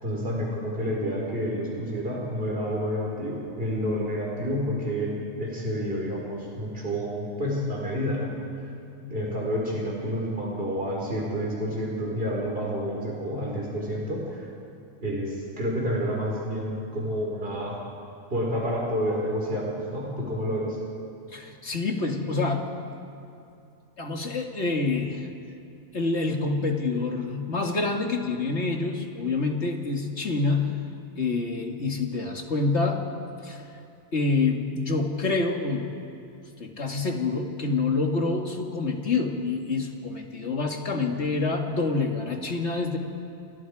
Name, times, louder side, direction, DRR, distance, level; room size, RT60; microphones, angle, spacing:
voice 1, 0.0-8.4 9.0-14.5 15.0-17.8 18.3-20.8, equal, 50° right, -3 dB, 4.4 m, -29 dB
voice 2, 21.3-23.0 24.0-25.3 25.9-30.8 31.2-33.0 33.4-33.6 34.1-35.9 36.6-43.0, left 3 dB, 60° left, 2 dB, 2.5 m, -27 dB
29.5 x 29.5 x 4.9 m, 2.6 s
omnidirectional pair, 1.3 m